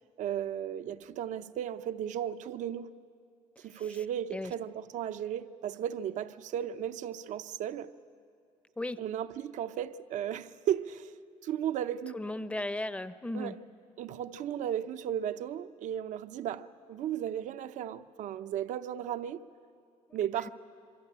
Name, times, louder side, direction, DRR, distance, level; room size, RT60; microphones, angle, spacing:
voice 1, 0.2-2.9 3.6-7.9 9.0-11.1 11.4-12.2 13.3-13.6 14.0-19.4 20.1-20.5, right 10 dB, 70° right, 0.7 m, -35 dB
voice 2, 12.1-13.5, left 1 dB, 10° left, 0.7 m, -35 dB
26.5 x 23.5 x 8.8 m
cardioid pair, 135°, 13 cm